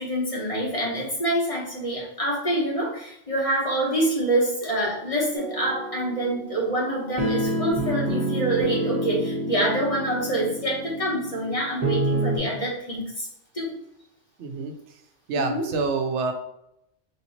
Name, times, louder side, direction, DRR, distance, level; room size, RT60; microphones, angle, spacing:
voice 1, 0.0-13.3 13.5-13.7 15.3-15.6, right 1 dB, 30° left, -4 dB, 1.2 m, -26 dB
sound 1, 5.4-12.4, right 1 dB, 35° right, 1.1 m, -28 dB
voice 2, 14.4-14.7 15.3-16.3, right 4 dB, 80° right, 5 dB, 0.9 m, -26 dB
3.5 x 2.9 x 4.1 m, 0.81 s
omnidirectional pair, 1.2 m